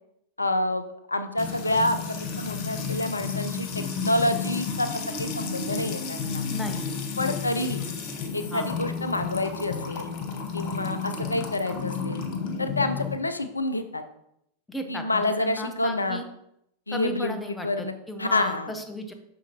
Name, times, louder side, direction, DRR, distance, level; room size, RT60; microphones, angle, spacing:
voice 1, 0.4-6.4 7.2-7.8 8.3-10.1 10.5-12.2 12.6-14.0 14.9-16.2 16.9-17.9 18.2-18.7, left 2 dB, 80° left, 10 dB, 0.4 m, -28 dB
Music / Water tap faucet / Trickle dribble, 1.4-13.2, left 5 dB, 40° left, 0.9 m, -32 dB
voice 2, 6.5-7.0 7.2-7.7 8.1-8.7 13.0-13.1 14.7-16.2 16.9-19.1, left 1 dB, 10° left, 5 dB, 0.9 m, -36 dB
6.3 x 6.0 x 2.8 m, 0.78 s
figure-of-eight pair, 90°, 0 cm